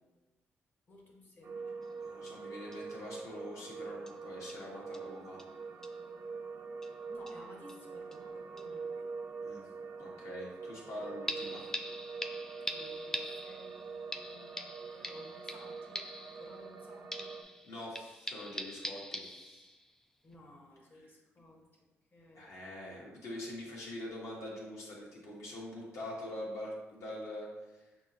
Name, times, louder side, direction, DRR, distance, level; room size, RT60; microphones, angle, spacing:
voice 1, 0.9-1.8 7.1-9.1 12.7-14.6 14.9-16.1 16.3-17.3 20.2-21.6 22.1-22.6, left 2 dB, 35° left, -1 dB, 1.1 m, -55 dB
sound 1, 1.4-17.4, right 4 dB, 50° right, 0.5 m, -44 dB
sound 2, 1.8-1.9 2.3-2.4 2.7-2.8 3.2-3.3 4.1-4.2 4.5-4.7 4.9-5.1 5.4-5.5 5.8-6.0 6.8-6.9 7.3-7.8 8.1-8.2 8.6-8.7 11.3-16.8 17.1-19.9 20.3-20.4, equal, 10° left, 0.3 m, -43 dB
voice 2, 2.0-5.4 9.4-9.7 10.0-11.6 17.6-19.7 22.3-27.8, left 1 dB, 65° left, -4 dB, 1.4 m, -44 dB
5.9 x 2.0 x 2.7 m, 1.1 s
supercardioid pair, 60°, 5 cm